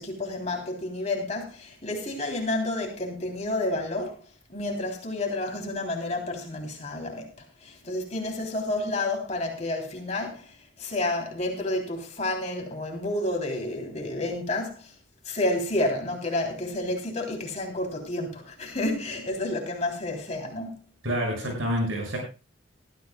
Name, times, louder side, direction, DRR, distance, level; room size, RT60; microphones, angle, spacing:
voice 1, 0.0-4.2 4.5-7.3 7.6-14.9 15.2-20.8, left 2 dB, 35° left, 3.3 m, -30 dB
voice 2, 21.0-22.2, equal, 90° right, 6.8 m, -27 dB
19.5 x 13.5 x 2.3 m
head